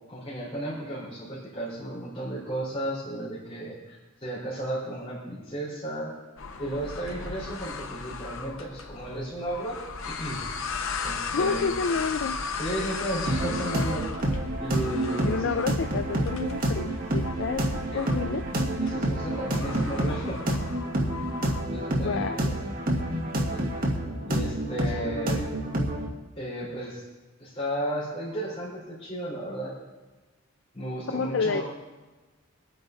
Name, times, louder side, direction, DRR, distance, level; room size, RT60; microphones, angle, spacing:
voice 1, 0.1-6.1 6.6-9.8 10.1-10.4 11.0-11.7 12.6-14.0 14.6-15.5 17.9-18.0 18.8-20.5 21.6-22.5 23.5-23.6 24.2-25.4 26.4-27.0 27.4-29.7 30.7-31.6, right 1 dB, 30° left, -10 dB, 4.6 m, -34 dB
sound 1, 6.4-21.6, left 4 dB, 80° left, 1.1 m, -37 dB
voice 2, 11.3-12.4 15.2-18.5 22.0-22.4 31.1-31.6, left 5 dB, 60° left, 9 dB, 0.4 m, -29 dB
sound 2, 13.3-26.1, right 1 dB, 45° right, 1.9 m, -28 dB
24.0 x 9.1 x 4.1 m, 1.2 s
head